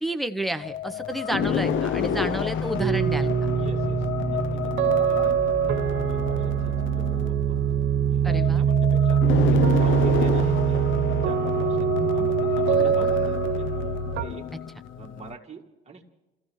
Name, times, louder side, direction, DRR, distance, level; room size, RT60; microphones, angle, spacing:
voice 1, 0.0-3.3 8.2-8.6 12.0-12.3 12.8-13.1, right 1 dB, ahead, 6 dB, 0.9 m, -31 dB
sound 1, 0.6-15.3, left 8 dB, 75° left, 0.7 m, -30 dB
sound 2, 2.8-14.3, right 8 dB, 75° right, 1.2 m, -23 dB
voice 2, 3.4-5.4 5.6-7.6 8.1-10.9 11.2-13.7 14.2-14.5 15.0-16.0, right 5 dB, 35° right, 0 dB, 2.3 m, -44 dB
29.5 x 15.0 x 3.2 m, 1.0 s
cardioid pair, 90°, 20 cm